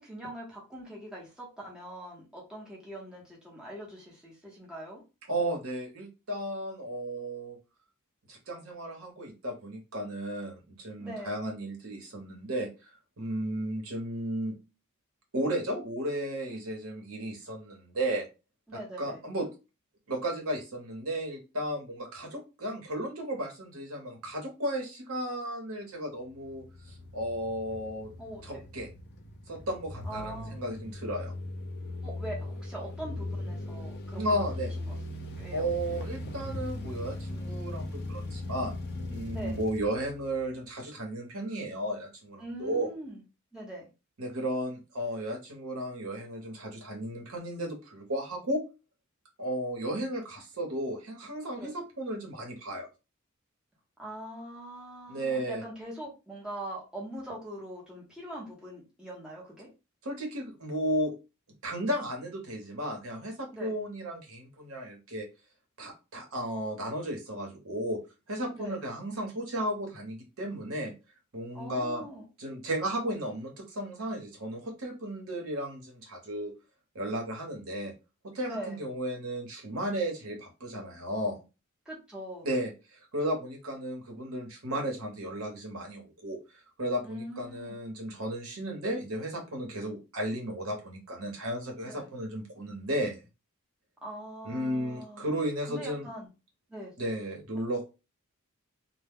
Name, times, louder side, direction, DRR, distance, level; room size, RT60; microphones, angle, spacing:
voice 1, 0.0-5.0 11.0-11.4 18.7-19.2 28.2-28.6 30.0-30.6 32.0-34.2 34.8-34.9 35.4-35.7 39.3-39.6 42.4-43.2 43.5-43.9 51.5-51.7 54.0-59.7 63.5-63.7 68.5-68.8 71.5-72.3 78.5-78.8 81.9-82.5 87.0-87.8 91.8-92.1 94.0-95.3 95.7-96.3 96.7-96.9, right 1 dB, 5° right, -5 dB, 0.8 m, -42 dB
voice 2, 5.3-7.6 8.3-12.7 13.2-14.5 15.3-18.3 19.0-19.5 20.1-28.1 28.4-28.9 29.5-31.3 34.1-34.7 35.5-38.7 39.1-42.9 44.2-48.6 49.4-52.9 55.1-55.6 60.0-61.1 61.6-65.3 65.8-68.0 68.3-70.9 71.3-72.1 72.4-76.5 76.9-77.9 78.3-81.4 82.4-86.4 86.8-93.2 94.4-96.1 97.0-97.8, right 1 dB, 75° right, 1 dB, 0.9 m, -34 dB
sound 1, 26.3-40.7, left 1 dB, 50° left, 0.4 m, -39 dB
2.2 x 2.1 x 3.4 m, 0.29 s
head